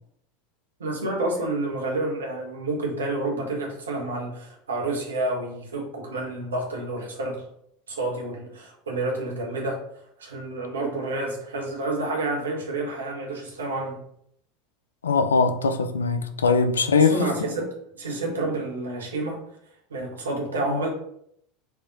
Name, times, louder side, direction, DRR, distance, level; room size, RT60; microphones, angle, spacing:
voice 1, 0.8-7.4 7.9-9.8 10.2-14.0 17.0-17.7 17.9-19.4 19.9-20.9, right 2 dB, 75° right, 1.1 m, -29 dB
voice 2, 15.0-17.2, left 4 dB, 75° left, 0.3 m, -21 dB
4.6 x 2.7 x 4.0 m
figure-of-eight pair, 75°, 0 cm